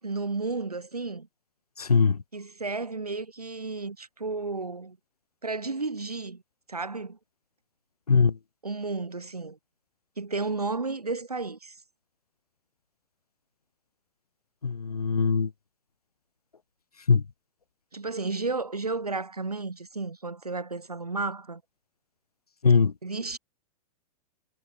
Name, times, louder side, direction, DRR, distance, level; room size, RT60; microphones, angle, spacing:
voice 1, 0.0-1.3 2.3-5.0 5.4-6.4 6.7-7.2 8.6-9.6 10.2-11.8 17.9-21.6 23.0-23.4, right 3 dB, 85° right, 7.8 m, -32 dB
voice 2, 1.8-2.2 8.1-8.4 14.6-15.5 17.1-17.2 22.6-22.9, left 5 dB, 80° left, 2.7 m, -21 dB
figure-of-eight pair, 105°, 19 cm